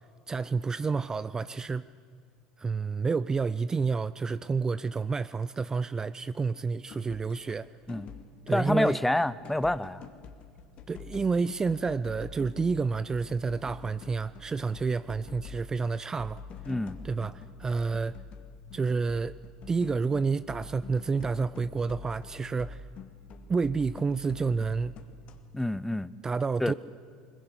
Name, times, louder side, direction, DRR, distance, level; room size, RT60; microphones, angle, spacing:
voice 1, 0.3-1.9 2.6-7.7 8.5-9.0 10.9-16.4 17.0-18.1 18.7-19.3 19.7-22.8 23.5-24.9 26.2-26.7, right 4 dB, 25° right, 16 dB, 0.5 m, -29 dB
sound 1, 6.9-7.6 7.9-9.2 9.4-25.6, left 5 dB, 50° left, 2.0 m, -46 dB
voice 2, 8.5-10.0 16.7-17.0 25.5-26.1 26.6-26.7, left 1 dB, 5° left, 18 dB, 0.8 m, -27 dB
21.5 x 20.5 x 8.2 m, 2.2 s
hypercardioid pair, 80°, 3 cm